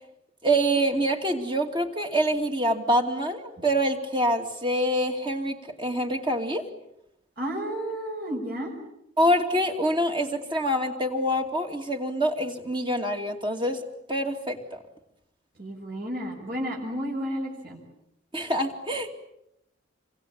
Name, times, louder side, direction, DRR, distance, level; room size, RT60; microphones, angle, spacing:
voice 1, 0.4-6.6 9.2-14.8 18.3-19.1, equal, 25° right, 3 dB, 2.6 m, -26 dB
voice 2, 7.4-8.7 15.6-17.8, equal, 50° right, -1 dB, 6.2 m, -32 dB
28.0 x 24.0 x 8.7 m, 0.80 s
head